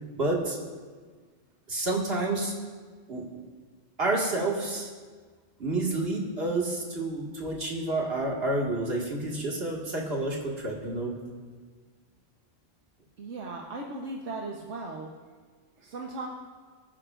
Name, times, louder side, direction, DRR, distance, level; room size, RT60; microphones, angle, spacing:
voice 1, 0.1-0.6 1.7-2.5 3.1-3.2 4.0-4.9 5.6-11.1, right 2 dB, 55° right, -2 dB, 2.2 m, -29 dB
voice 2, 13.2-15.1 15.8-16.3, right 3 dB, 75° right, -1 dB, 1.3 m, -37 dB
24.0 x 10.0 x 2.5 m, 1.5 s
omnidirectional pair, 1.2 m